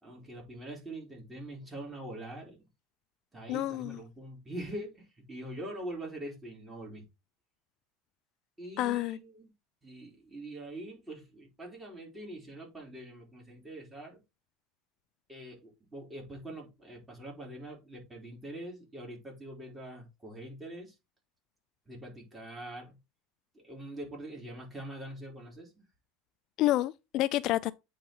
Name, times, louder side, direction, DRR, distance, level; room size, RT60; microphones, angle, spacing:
voice 1, 0.0-2.6 3.3-7.0 8.6-9.5 9.8-14.2 15.3-20.9 21.9-22.9 23.5-25.7, right 1 dB, 15° right, 3.9 m, -44 dB
voice 2, 3.5-4.0 8.8-9.2 26.6-27.7, left 15 dB, 50° left, 0.4 m, -29 dB
8.6 x 4.0 x 4.5 m
supercardioid pair, 130°, 0 cm